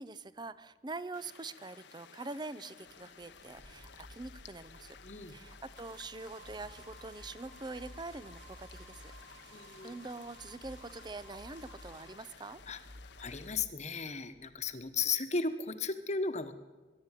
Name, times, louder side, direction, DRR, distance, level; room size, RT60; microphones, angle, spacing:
voice 1, 0.0-5.0 5.3-12.6, right 3 dB, 25° right, 16 dB, 0.7 m, -45 dB
sound 1, 1.1-13.6, left 6 dB, 65° left, 1.0 m, -56 dB
sound 2, 2.8-14.9, left 1 dB, 60° right, 4.8 m, -56 dB
voice 2, 5.0-5.4 9.5-9.9 12.7-12.8 13.2-16.5, left 4 dB, 40° left, 9 dB, 1.3 m, -35 dB
sound 3, 5.7-12.1, right 2 dB, 85° right, 6.8 m, -57 dB
22.0 x 12.0 x 9.9 m, 1.3 s
head